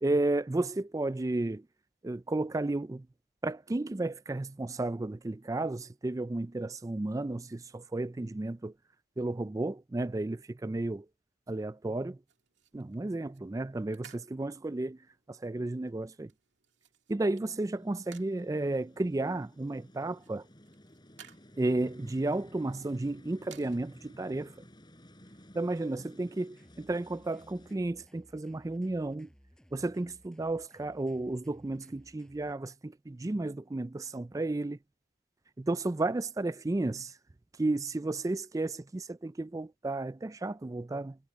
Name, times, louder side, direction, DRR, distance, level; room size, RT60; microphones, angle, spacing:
voice 1, 0.0-1.6 2.0-3.1 3.4-8.7 9.2-11.0 11.5-12.2 12.7-15.0 15.4-16.3 17.1-20.4 21.6-24.5 25.5-29.3 29.7-34.8 35.6-37.1 37.6-41.2, right 2 dB, 15° right, 0.3 m, -33 dB
sound 1, 12.3-23.8, right 8 dB, 60° right, 2.3 m, -60 dB
sound 2, 17.6-27.7, equal, 20° left, 4.6 m, -55 dB
sound 3, 26.6-32.5, equal, 5° left, 5.1 m, -61 dB
head